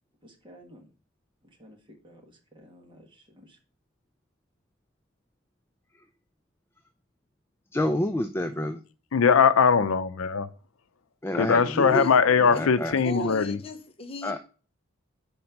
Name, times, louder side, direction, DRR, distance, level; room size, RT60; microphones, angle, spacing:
voice 1, 0.2-0.9 1.4-3.6, equal, 25° right, 1.5 m, -53 dB
voice 2, 7.7-8.8 11.2-12.1 12.5-12.9 14.2-14.4, left 1 dB, 10° left, 0.3 m, -28 dB
voice 3, 9.1-10.5 11.3-13.6, left 6 dB, 80° left, 0.5 m, -21 dB
voice 4, 13.0-14.4, equal, 30° left, 0.7 m, -36 dB
5.3 x 4.3 x 5.7 m
head